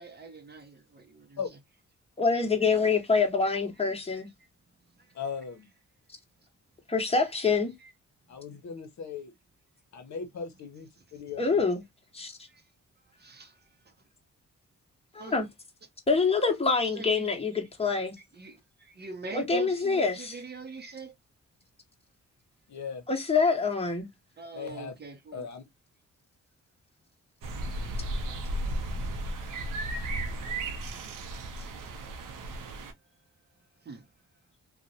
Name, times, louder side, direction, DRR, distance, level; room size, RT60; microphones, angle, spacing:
voice 1, 0.0-1.4 4.1-4.2 5.0-5.1 7.8-7.9 12.5-12.6 13.2-13.6 15.2-15.4 16.9-17.3 18.3-21.1 24.4-25.5 33.8-34.1, right 3 dB, 35° right, 0.5 m, -44 dB
voice 2, 2.2-4.3 6.9-7.7 11.4-11.8 12.1-12.3 15.1-15.5 16.1-18.2 19.3-20.4 23.1-24.1, left 4 dB, 20° left, 0.8 m, -26 dB
voice 3, 5.1-5.7 8.3-9.3 9.9-11.6 22.7-23.0 24.5-24.9 25.3-25.6, left 6 dB, 65° left, 0.7 m, -38 dB
sound 1, 27.4-32.9, right 1 dB, 90° right, 0.5 m, -34 dB
2.5 x 2.0 x 2.6 m
cardioid pair, 70°, 31 cm